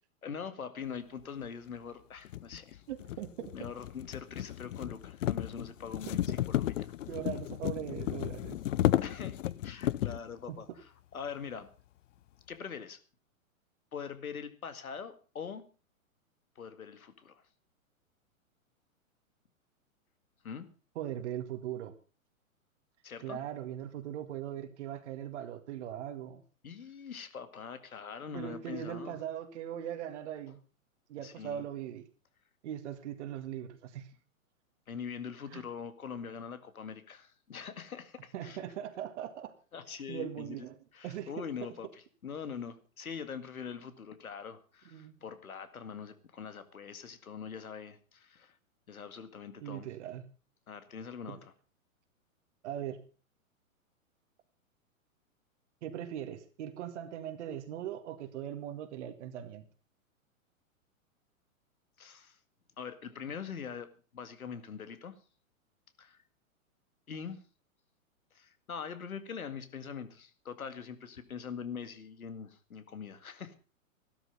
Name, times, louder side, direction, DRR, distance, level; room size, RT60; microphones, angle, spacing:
voice 1, 0.2-2.8 3.5-6.9 9.0-9.4 9.6-10.8 11.1-11.7 12.5-13.0 13.9-15.6 16.6-17.4 20.4-20.7 23.0-23.4 26.6-29.2 31.2-31.6 34.9-38.6 39.7-40.7 40.9-48.6 48.9-49.9 50.7-51.5 62.0-62.4 62.8-65.2 66.0-66.2 67.1-67.4 68.3-73.6, left 6 dB, 80° left, 2.2 m, -43 dB
sound 1, 1.4-1.5 2.3-10.3, left 13 dB, 60° left, 0.8 m, -33 dB
voice 2, 2.9-3.7 4.8-4.9 6.1-6.2 7.1-8.6 10.5-10.6 21.0-21.9 23.2-26.4 28.3-30.6 31.1-32.1 32.6-34.1 35.5-35.6 38.3-39.5 39.9-40.8 41.0-41.7 44.9-45.2 49.6-50.3 51.3-51.4 52.6-53.0 55.8-59.6, right 10 dB, 55° right, 2.1 m, -40 dB
15.0 x 12.5 x 5.4 m
hypercardioid pair, 115°, 42 cm